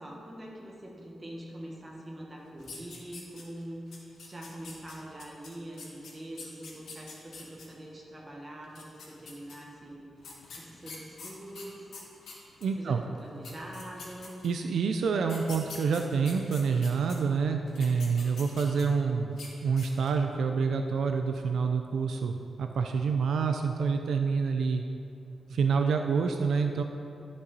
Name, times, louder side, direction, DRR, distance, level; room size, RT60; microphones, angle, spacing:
voice 1, 0.0-11.9 12.7-14.4, right 1 dB, 15° right, -3 dB, 1.4 m, -44 dB
sound 1, 2.6-3.6 3.9-7.6 8.6-9.5 10.2-12.7 13.2-13.3 13.4-14.6 15.2-17.1 17.7-19.0 19.3-19.5 19.8-20.2, left 4 dB, 85° left, 1.6 m, -45 dB
voice 2, 12.6-13.0 14.4-24.8 25.5-26.8, right 5 dB, 75° right, 5 dB, 0.4 m, -27 dB
11.5 x 5.4 x 4.0 m, 2.7 s
wide cardioid pair, 160°, 0 cm